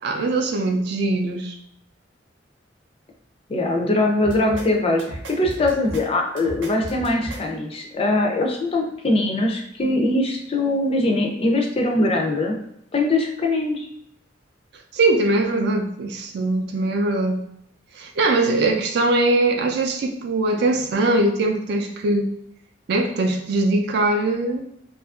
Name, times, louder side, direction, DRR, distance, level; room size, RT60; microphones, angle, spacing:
voice 1, 0.0-1.6 14.9-17.4 18.0-22.3 22.9-24.7, right 2 dB, 60° right, 4 dB, 0.4 m, -21 dB
voice 2, 3.5-12.6 12.9-13.9, left 2 dB, 30° left, 1 dB, 0.4 m, -22 dB
sound 1, 4.2-4.7 5.0-6.0 6.4-7.4, right 1 dB, 90° right, 0.8 m, -34 dB
2.7 x 2.4 x 2.3 m, 0.76 s
head